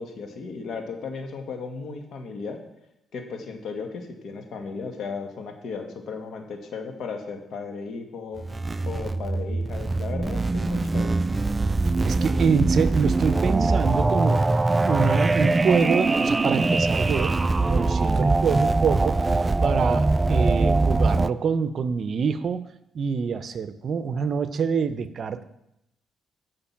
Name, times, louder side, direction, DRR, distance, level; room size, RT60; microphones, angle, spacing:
voice 1, 0.0-2.6 3.1-8.4 8.8-11.1, left 4 dB, 65° left, 4 dB, 1.8 m, -35 dB
sound 1, 8.4-21.3, right 3 dB, 20° right, 0.3 m, -22 dB
voice 2, 11.8-14.5 14.9-17.4 17.7-19.3 19.6-22.6 22.9-25.4, right 6 dB, 55° right, 12 dB, 0.7 m, -26 dB
14.5 x 5.2 x 5.9 m, 0.85 s
cardioid pair, 90°, 0 cm